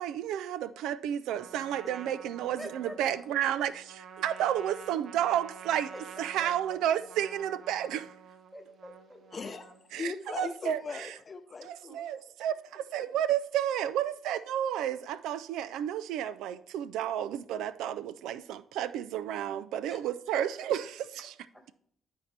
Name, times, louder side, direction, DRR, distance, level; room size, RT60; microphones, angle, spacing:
voice 1, 0.0-5.9 6.2-8.1 9.9-11.2 11.6-21.3, right 10 dB, 90° right, 0.3 m, -32 dB
Trumpet, 1.3-10.0, right 6 dB, 60° right, 0.7 m, -49 dB
voice 2, 2.6-3.0 3.7-3.8 5.9-6.5 8.5-9.2 12.9-13.1 19.9-20.0 20.3-20.4, equal, ahead, 1.7 m, -45 dB
voice 3, 9.3-12.1, left 4 dB, 40° left, 0.5 m, -39 dB
12.0 x 4.3 x 3.3 m
cardioid pair, 90°, 0 cm